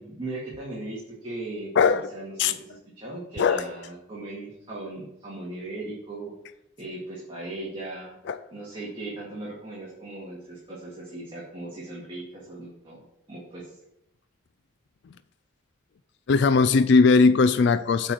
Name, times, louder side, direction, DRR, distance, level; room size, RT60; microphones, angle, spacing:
voice 1, 0.0-6.3 6.8-8.1 8.5-12.2 12.5-13.0 13.3-13.8, right 2 dB, 25° right, 2.1 m, -38 dB
voice 2, 1.8-2.1 2.4-2.5 3.4-3.6 8.3-8.4 16.3-18.1, left 4 dB, 55° left, 0.3 m, -19 dB
8.6 x 4.6 x 7.4 m
head